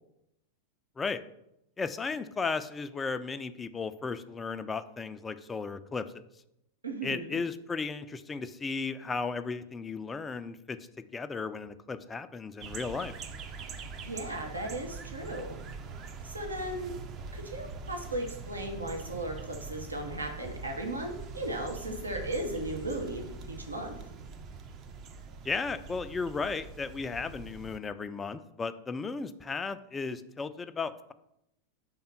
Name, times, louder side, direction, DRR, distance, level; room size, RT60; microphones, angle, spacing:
voice 1, 1.8-6.1 7.0-10.8 11.1-13.1 25.4-31.1, left 4 dB, 15° left, 11 dB, 0.4 m, -35 dB
voice 2, 6.8-7.4 14.0-15.6 16.2-16.9 17.3-24.0, right 1 dB, 80° right, 2 dB, 0.9 m, -36 dB
sound 1, 12.6-27.8, right 4 dB, 35° right, 0.6 m, -43 dB
5.3 x 3.6 x 5.7 m, 0.83 s
figure-of-eight pair, 90°, 0 cm